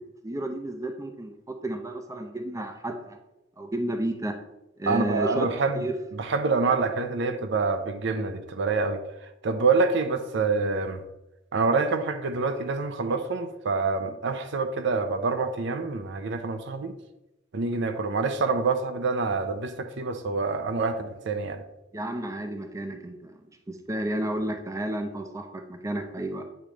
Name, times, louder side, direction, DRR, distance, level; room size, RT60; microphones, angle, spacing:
voice 1, 0.2-3.2 3.6-4.4 4.8-5.5 5.7-5.9 21.9-23.4 23.7-26.4, right 1 dB, 15° right, 5 dB, 0.6 m, -32 dB
voice 2, 4.9-5.9 6.2-9.0 9.4-11.0 11.5-17.0 17.5-21.6, right 4 dB, 65° right, 8 dB, 0.6 m, -26 dB
8.6 x 3.1 x 5.0 m, 0.95 s
head